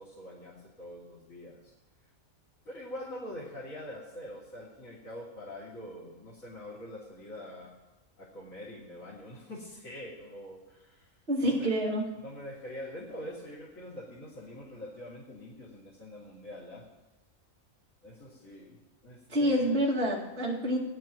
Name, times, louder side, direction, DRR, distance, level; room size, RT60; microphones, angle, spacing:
voice 1, 0.0-1.7 2.6-7.7 8.2-11.2 11.4-11.7 12.1-16.8 18.0-18.8 19.0-19.8, left 1 dB, 75° left, -6 dB, 3.1 m, -44 dB
voice 2, 11.3-12.1 19.3-20.8, equal, 50° right, -5 dB, 2.6 m, -27 dB
19.0 x 10.5 x 3.1 m, 1.1 s
omnidirectional pair, 1.4 m